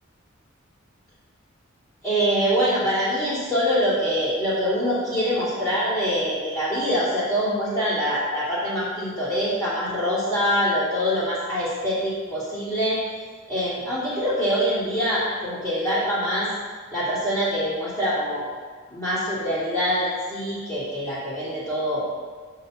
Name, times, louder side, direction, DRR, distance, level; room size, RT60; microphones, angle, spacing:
voice 1, 2.0-13.0 13.5-16.5 16.9-18.5 18.9-22.0, equal, 15° left, -11 dB, 2.4 m, -24 dB
5.7 x 5.2 x 6.6 m, 1.5 s
head